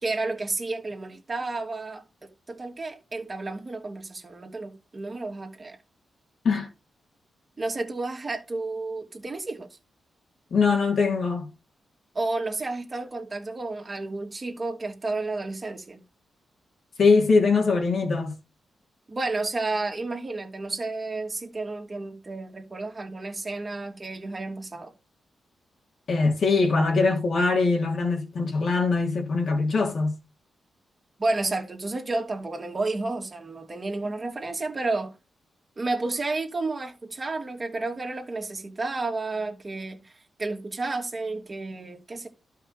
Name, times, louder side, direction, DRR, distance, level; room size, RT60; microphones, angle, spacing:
voice 1, 0.0-5.8 7.6-9.8 12.1-16.0 19.1-24.9 31.2-35.1 35.8-42.3, right 3 dB, 30° right, 2.5 m, -31 dB
voice 2, 10.5-11.5 17.0-18.3 26.1-30.1, left 4 dB, 60° left, 3.1 m, -22 dB
12.0 x 5.6 x 4.2 m
cardioid pair, 90°, 0 cm